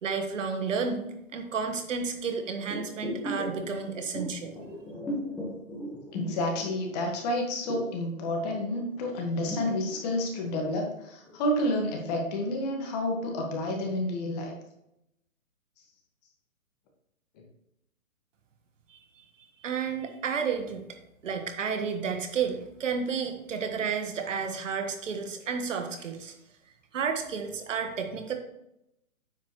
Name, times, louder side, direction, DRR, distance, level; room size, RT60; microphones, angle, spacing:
voice 1, 0.0-4.5 18.9-19.0 19.6-20.8 21.2-26.3 26.9-28.3, right 6 dB, 60° right, 5 dB, 1.6 m, -31 dB
sound 1, 2.7-7.1 7.4-10.9 11.3-11.4, left 1 dB, 5° left, 1.3 m, -37 dB
voice 2, 6.1-14.6, left 1 dB, 30° left, 1 dB, 1.7 m, -30 dB
9.3 x 7.4 x 3.1 m, 0.83 s
hypercardioid pair, 145°, 42 cm